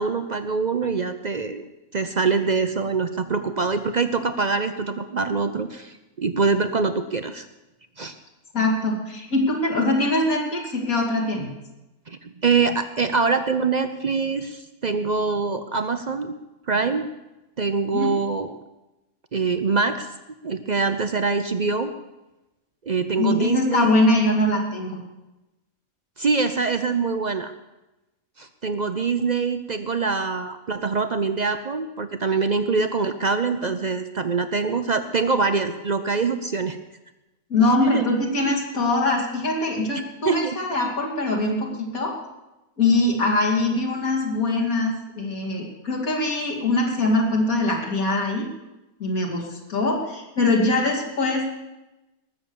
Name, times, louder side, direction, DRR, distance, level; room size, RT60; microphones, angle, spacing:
voice 1, 0.0-1.6 1.9-7.5 8.0-8.1 12.1-16.3 16.7-17.1 17.6-18.5 19.3-20.1 20.4-21.9 22.9-23.9 26.2-27.5 28.4-36.8 37.9-38.0 40.2-40.6, right 4 dB, 50° right, 9 dB, 0.5 m, -24 dB
voice 2, 8.5-11.5 17.9-18.1 23.2-25.0 37.5-42.1 42.8-48.5 49.0-51.4, left 2 dB, 75° left, -1 dB, 3.0 m, -22 dB
20.0 x 7.1 x 7.0 m, 1.0 s
omnidirectional pair, 1.5 m